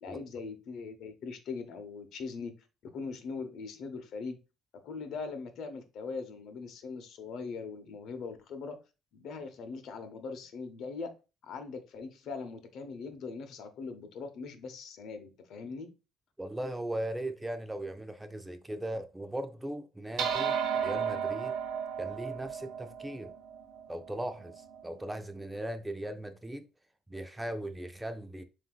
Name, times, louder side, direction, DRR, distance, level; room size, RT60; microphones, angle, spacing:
voice 1, 0.0-2.5 2.8-4.4 4.8-8.8 9.1-11.1 11.4-15.9, left 4 dB, 65° left, 0.9 m, -41 dB
voice 2, 16.4-21.5 22.0-23.3 23.9-26.7 27.1-28.4, right 1 dB, 10° right, 0.5 m, -38 dB
sound 1, 20.2-24.8, right 7 dB, 60° right, 1.0 m, -34 dB
7.3 x 2.7 x 2.4 m
cardioid pair, 95°, 0 cm